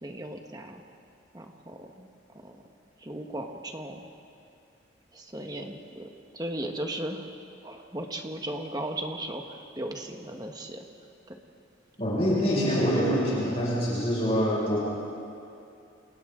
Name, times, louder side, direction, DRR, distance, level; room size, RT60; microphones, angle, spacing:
voice 1, 0.0-0.8 1.3-2.1 2.4-2.6 3.0-4.1 5.1-6.1 6.3-7.3 7.6-10.8 11.3-11.4, right 1 dB, 20° right, 3 dB, 1.5 m, -36 dB
voice 2, 12.0-14.8, equal, 35° left, -7 dB, 6.1 m, -25 dB
28.5 x 28.0 x 3.9 m, 2.6 s
head